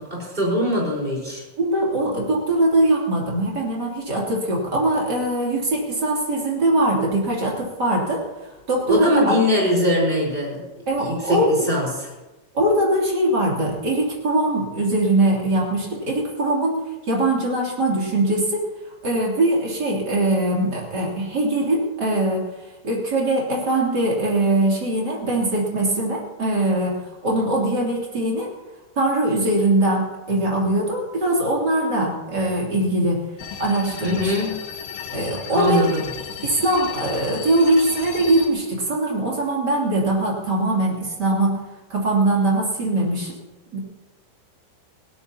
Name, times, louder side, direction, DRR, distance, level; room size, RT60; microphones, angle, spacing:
voice 1, 0.0-1.4 8.9-10.6 11.0-11.4 11.7-11.9 34.0-34.5 35.5-36.0, left 1 dB, 10° right, -3 dB, 4.4 m, -22 dB
voice 2, 1.6-8.2 8.7-9.3 10.9-11.7 12.5-18.6 19.0-22.4 22.8-28.5 29.0-33.2 33.6-34.3 35.1-35.8 36.4-41.6 41.9-43.4 43.7-43.8, right 1 dB, 25° right, -3 dB, 2.8 m, -21 dB
sound 1, 33.4-38.5, left 7 dB, 85° left, 3.7 m, -35 dB
19.0 x 17.0 x 2.9 m, 1.1 s
omnidirectional pair, 5.2 m